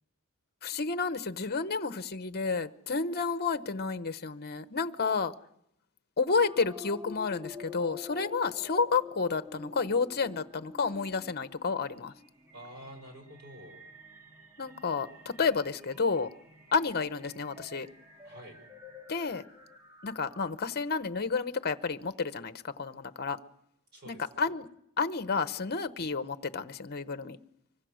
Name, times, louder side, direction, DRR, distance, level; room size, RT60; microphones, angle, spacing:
voice 1, 0.6-5.3 6.2-12.1 14.6-16.3 16.7-17.9 19.1-19.4 20.0-23.4 24.1-24.7 25.0-27.4, left 4 dB, 45° left, 1.0 m, -31 dB
sound 1, 6.3-20.8, left 4 dB, 10° right, 2.4 m, -48 dB
voice 2, 12.5-13.8 18.2-18.6 23.9-24.5, equal, 50° right, 6.3 m, -48 dB
25.5 x 24.0 x 6.4 m
head